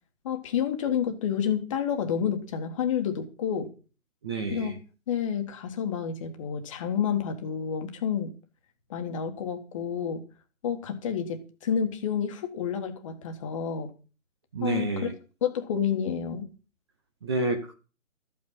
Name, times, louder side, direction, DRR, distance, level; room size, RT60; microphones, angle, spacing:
voice 1, 0.2-3.7 4.5-4.8 5.1-8.3 8.9-10.2 10.6-13.9 14.6-15.1 15.4-16.5, left 8 dB, 25° left, 6 dB, 1.6 m, -29 dB
voice 2, 4.2-4.7 14.5-15.1 17.2-17.7, right 3 dB, 20° right, 4 dB, 0.8 m, -29 dB
13.5 x 8.5 x 5.6 m, 0.35 s
figure-of-eight pair, 150°, 40 cm